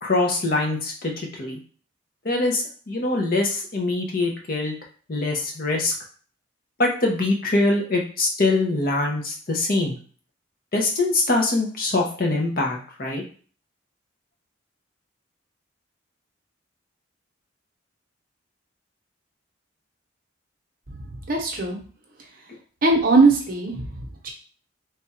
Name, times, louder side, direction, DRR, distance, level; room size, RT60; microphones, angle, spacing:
voice 1, 0.0-1.6 2.2-4.7 5.1-5.9 6.8-10.0 10.7-13.2, left 2 dB, 45° left, 0 dB, 0.8 m, -23 dB
voice 2, 21.3-21.8 22.8-24.3, right 3 dB, 45° right, 1 dB, 0.8 m, -20 dB
3.4 x 2.3 x 4.2 m, 0.42 s
head